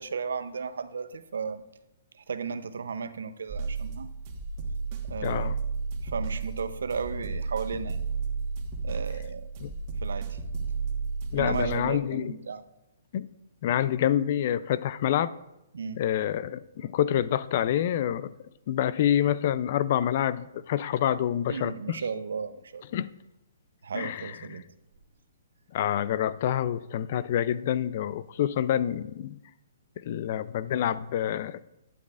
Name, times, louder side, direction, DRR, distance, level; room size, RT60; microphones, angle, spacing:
voice 1, 0.0-1.6 2.3-4.1 5.1-5.5 6.0-8.0 8.8-9.4 10.0-10.4 11.4-12.6 15.7-16.0 21.5-22.8 23.8-24.6, right 5 dB, 80° right, 0.6 m, -34 dB
sound 1, 3.5-11.8, right 4 dB, 35° right, 1.4 m, -33 dB
voice 2, 5.2-5.6 9.6-9.7 11.3-12.3 13.1-13.3 13.6-15.3 16.0-18.3 18.7-22.0 22.9-23.1 23.9-24.6 25.7-29.4 30.0-31.6, left 10 dB, 50° left, 0.4 m, -27 dB
11.5 x 9.4 x 2.5 m
hypercardioid pair, 145°, 0 cm